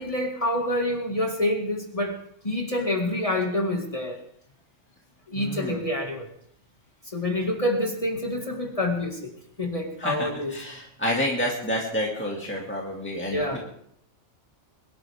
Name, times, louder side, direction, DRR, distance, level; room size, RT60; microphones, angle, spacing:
voice 1, 0.0-2.2 2.4-4.2 5.3-6.3 7.1-9.3 9.6-10.5 13.3-13.6, left 1 dB, 30° left, 2 dB, 2.0 m, -27 dB
voice 2, 5.3-5.8 10.0-13.6, equal, 10° left, -2 dB, 2.1 m, -29 dB
22.5 x 12.5 x 3.5 m, 0.68 s
omnidirectional pair, 1.2 m